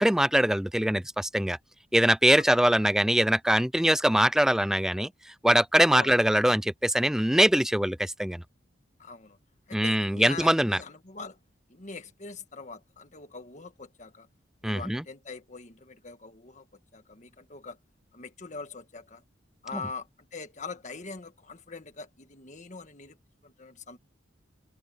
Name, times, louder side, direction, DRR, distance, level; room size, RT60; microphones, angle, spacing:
voice 1, 0.0-1.6 1.9-5.1 5.4-8.4 9.7-10.8 14.6-15.0 19.7-19.8, right 1 dB, 5° right, 0.4 m, -23 dB
voice 2, 9.0-9.4 9.7-11.4 11.7-14.3 14.6-16.6 16.9-17.8 18.1-19.2 19.6-23.2 23.4-24.0, left 4 dB, 40° left, 1.6 m, -42 dB
head